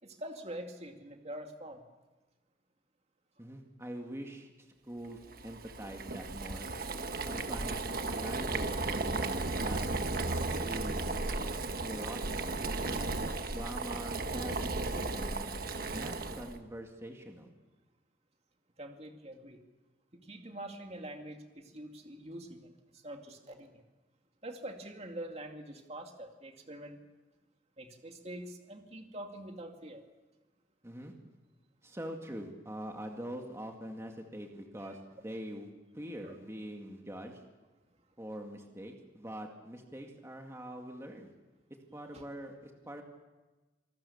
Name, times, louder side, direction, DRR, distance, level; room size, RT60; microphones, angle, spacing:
voice 1, 0.0-1.8 18.8-19.6 20.1-23.8 24.4-27.0 27.8-30.0 34.8-34.9 36.2-36.4 42.1-42.2, right 1 dB, 35° right, 4 dB, 2.3 m, -45 dB
voice 2, 3.4-6.7 7.2-7.8 8.1-11.1 11.8-13.2 13.5-15.5 15.8-17.5 30.8-31.1 31.8-35.7 35.9-37.4 38.2-41.3 41.9-43.0, equal, 15° right, 2 dB, 2.1 m, -44 dB
Boiling, 5.3-16.6, right 3 dB, 55° right, 1.3 m, -35 dB
27.0 x 19.0 x 7.2 m, 1.2 s
head